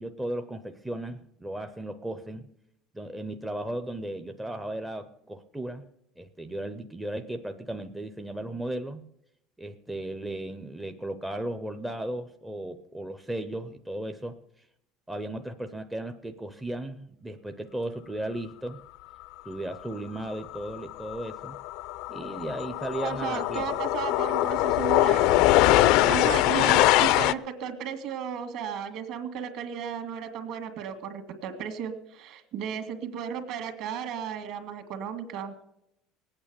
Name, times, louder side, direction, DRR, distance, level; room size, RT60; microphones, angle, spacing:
voice 1, 0.0-2.5 2.9-5.9 6.2-9.1 9.6-14.7 15.1-18.8 19.5-21.6 22.1-23.7 26.0-26.4, right 1 dB, 5° right, 7 dB, 0.5 m, -36 dB
sound 1, 20.5-20.8 21.0-27.3, left 15 dB, 60° left, 0.4 m, -22 dB
voice 2, 23.0-25.5 25.8-35.5, right 8 dB, 50° right, 7 dB, 1.9 m, -34 dB
19.5 x 8.8 x 6.9 m, 0.82 s
cardioid pair, 175°, 0 cm